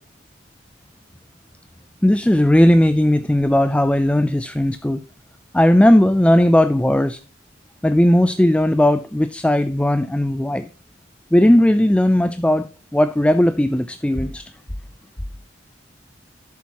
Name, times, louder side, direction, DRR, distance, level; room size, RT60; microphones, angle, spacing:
voice 1, 2.0-5.0 5.5-7.2 7.8-10.7 11.3-12.7 12.9-14.4, left 1 dB, 5° left, 0.4 m, -16 dB
12.0 x 7.1 x 2.9 m
head